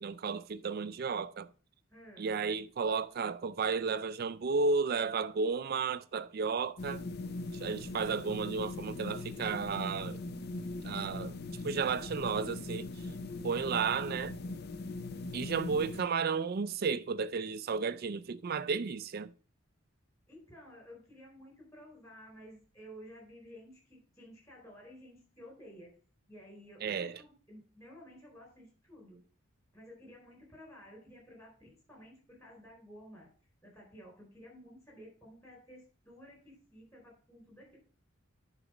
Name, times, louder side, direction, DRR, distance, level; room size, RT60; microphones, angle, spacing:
voice 1, 0.0-1.5 2.2-7.0 7.5-10.2 10.8-11.3 11.6-12.9 13.4-14.4 15.3-19.3 26.8-27.2, right 5 dB, 50° right, 0.4 m, -33 dB
voice 2, 1.9-2.3 20.3-26.0 26.3-29.2 29.7-33.3 33.6-37.8, equal, 15° left, 3.9 m, -53 dB
sound 1, 6.8-16.0, left 2 dB, 50° left, 0.5 m, -40 dB
9.8 x 4.0 x 4.9 m
head